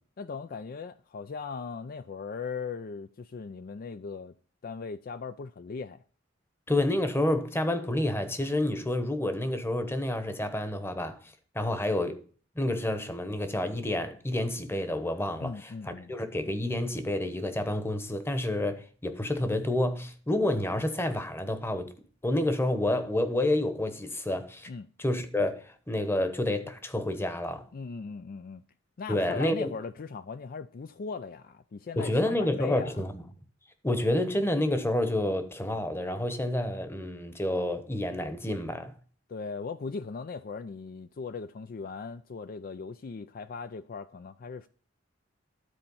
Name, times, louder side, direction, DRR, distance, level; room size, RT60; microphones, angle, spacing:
voice 1, 0.2-4.3 4.6-6.0 15.4-16.1 24.7-24.9 27.7-28.6 29.0-32.9 39.3-44.7, left 5 dB, 50° left, 0.4 m, -39 dB
voice 2, 6.7-11.2 11.5-12.2 12.6-21.9 22.2-24.7 25.0-27.7 29.1-29.7 32.0-33.2 33.8-38.9, left 1 dB, 15° left, 1.0 m, -29 dB
12.5 x 4.4 x 5.5 m
head